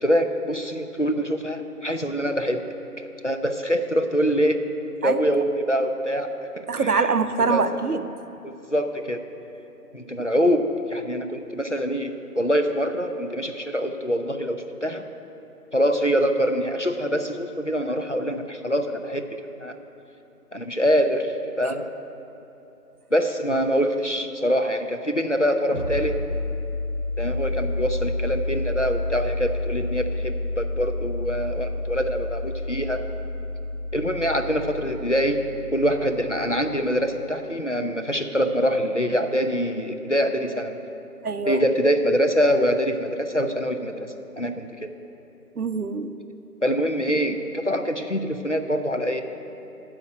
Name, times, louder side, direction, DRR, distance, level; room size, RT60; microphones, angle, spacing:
voice 1, 0.0-2.6 3.2-4.6 5.0-6.3 6.6-7.1 7.5-7.6 8.4-9.2 9.9-10.6 10.9-15.0 15.7-19.8 20.5-21.9 23.1-26.2 27.2-33.1 33.9-35.5 35.7-40.8 41.5-44.9 46.6-49.2, equal, 50° left, 6 dB, 0.5 m, -24 dB
voice 2, 6.7-8.1 21.6-21.7 41.2-41.6 45.6-46.2, right 4 dB, 70° right, 10 dB, 0.6 m, -24 dB
sound 1, 25.7-37.0, left 2 dB, 35° left, 1.6 m, -30 dB
12.5 x 4.3 x 7.4 m, 3.0 s
figure-of-eight pair, 175°, 47 cm